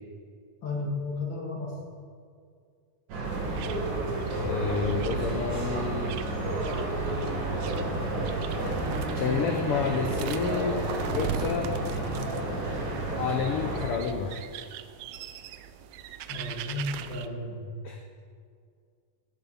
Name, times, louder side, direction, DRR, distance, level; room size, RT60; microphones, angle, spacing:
voice 1, 0.6-1.8 16.3-17.7, left 2 dB, 40° left, -3 dB, 2.4 m, -33 dB
sound 1, 3.1-13.9, right 2 dB, 65° right, 3.6 m, -31 dB
sound 2, 3.2-17.3, right 9 dB, 85° right, 1.5 m, -41 dB
voice 2, 4.4-6.2 9.1-10.8 11.1-11.8 13.2-14.4 17.8-18.0, left 5 dB, 80° left, 4 dB, 1.2 m, -29 dB
16.5 x 7.3 x 5.7 m, 2.2 s
omnidirectional pair, 3.7 m